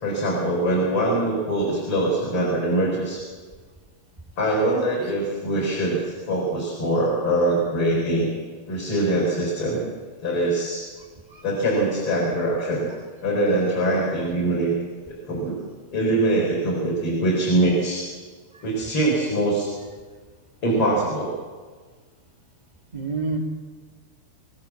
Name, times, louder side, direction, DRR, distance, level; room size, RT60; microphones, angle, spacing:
voice 1, 0.0-3.2 4.4-8.3 8.7-9.8 10.2-10.8 11.4-12.9 13.2-14.7 15.3-15.6 15.9-18.1 18.6-19.7 20.6-21.3, right 1 dB, 30° left, -4 dB, 5.2 m, -23 dB
voice 2, 22.9-23.4, right 4 dB, 25° right, -1 dB, 0.9 m, -28 dB
25.5 x 16.0 x 7.3 m, 1.5 s
omnidirectional pair, 5.5 m